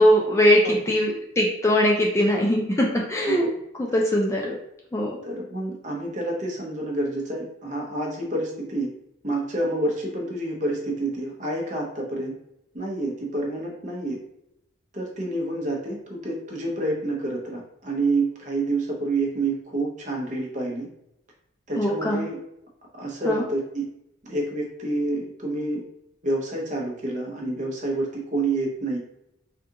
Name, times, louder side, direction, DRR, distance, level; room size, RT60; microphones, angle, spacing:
voice 1, 0.0-3.4 3.8-4.5 4.9-5.2 21.8-22.2 23.2-23.4, equal, 15° left, -2 dB, 0.3 m, -21 dB
voice 2, 5.2-8.9 9.2-12.3 12.7-14.2 14.9-20.9 21.7-22.4 22.9-23.9 24.2-25.8 26.2-29.0, right 2 dB, 40° right, -1 dB, 0.7 m, -28 dB
3.6 x 2.4 x 2.8 m, 0.80 s
head